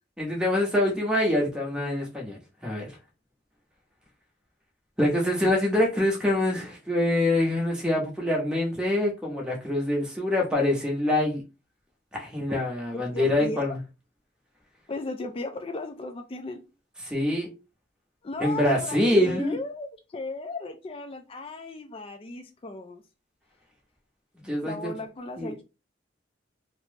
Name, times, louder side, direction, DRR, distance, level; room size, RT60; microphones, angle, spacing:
voice 1, 0.2-2.9 5.0-11.4 12.1-13.8 17.1-17.5 18.4-19.6 24.4-24.9 25.4-25.5, left 1 dB, 5° right, 0.8 m, -25 dB
voice 2, 12.9-13.7 14.9-16.6 18.2-23.0 24.6-25.6, left 2 dB, 30° left, 0.4 m, -36 dB
2.9 x 2.0 x 3.3 m
head